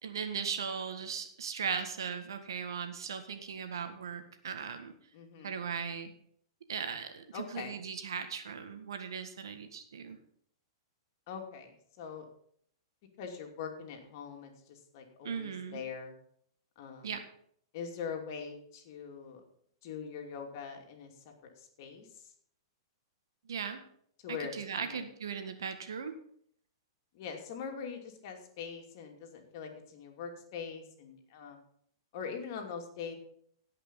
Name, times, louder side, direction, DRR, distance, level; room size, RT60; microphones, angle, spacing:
voice 1, 0.0-4.9 5.4-6.1 6.7-10.2 15.2-15.8 17.0-17.2 23.5-23.8 24.5-26.1, right 6 dB, 75° right, 7 dB, 1.7 m, -38 dB
voice 2, 5.1-5.6 7.3-7.8 11.3-12.2 13.2-16.1 16.8-17.2 17.7-19.4 19.8-22.3 24.2-25.0 27.1-31.6 32.1-33.2, left 6 dB, 55° left, 3 dB, 2.7 m, -43 dB
17.0 x 5.7 x 5.5 m, 0.64 s
hypercardioid pair, 115°, 2 cm